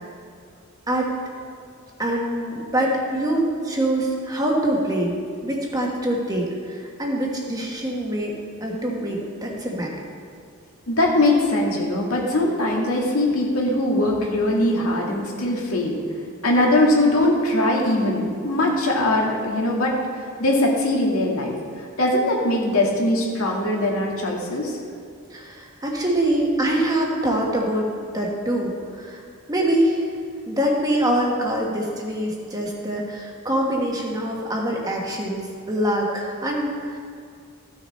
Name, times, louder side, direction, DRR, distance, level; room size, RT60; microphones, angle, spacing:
voice 1, 2.0-5.1 5.4-9.9 25.3-27.9 28.1-29.2 29.5-30.1 30.5-37.0, right 1 dB, 15° right, -1 dB, 1.3 m, -24 dB
voice 2, 10.9-16.0 16.4-24.8, left 1 dB, 75° left, -2 dB, 1.9 m, -21 dB
14.5 x 6.3 x 4.3 m, 2.3 s
head